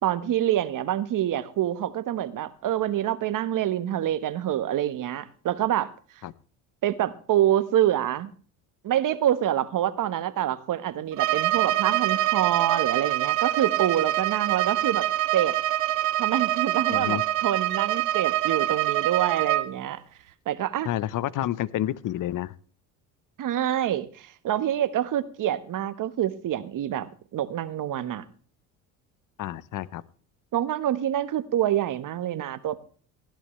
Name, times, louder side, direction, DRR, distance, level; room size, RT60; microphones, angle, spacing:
voice 1, 0.0-5.9 6.8-8.3 8.8-15.1 15.3-15.6 16.2-20.0 20.5-20.9 23.4-27.1 27.3-28.2 30.5-32.8, right 11 dB, 55° right, 1.3 m, -26 dB
Bowed string instrument, 11.1-19.7, right 15 dB, 90° right, 0.7 m, -25 dB
voice 2, 16.9-17.2 20.8-22.5 29.4-30.0, left 13 dB, 50° left, 0.8 m, -29 dB
17.5 x 11.5 x 3.2 m
supercardioid pair, 75°, 39 cm